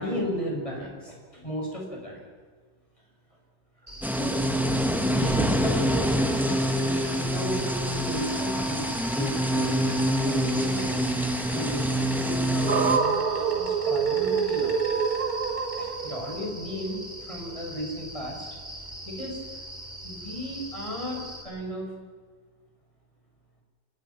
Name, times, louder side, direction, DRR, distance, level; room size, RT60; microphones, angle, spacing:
voice 1, 0.0-2.2 3.8-4.6 5.0-11.1 11.5-15.0 15.8-18.4 19.1-19.6 20.0-21.9, equal, 20° left, -1 dB, 7.0 m, -35 dB
Insect, 3.9-21.4, right 1 dB, 25° right, 5.1 m, -40 dB
sound 1, 4.0-13.0, equal, ahead, 1.6 m, -26 dB
sound 2, 12.7-16.9, right 6 dB, 60° right, 1.9 m, -26 dB
30.0 x 22.0 x 6.0 m, 1.5 s
omnidirectional pair, 1.8 m